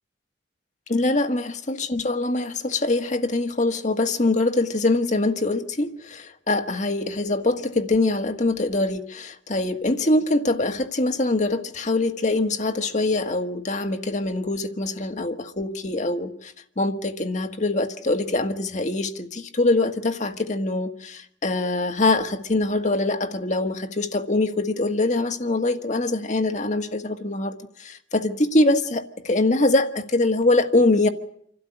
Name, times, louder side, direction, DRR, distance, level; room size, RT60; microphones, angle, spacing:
voice 1, 0.9-31.1, left 2 dB, 40° left, 1.5 m, -23 dB
26.5 x 12.5 x 9.9 m
head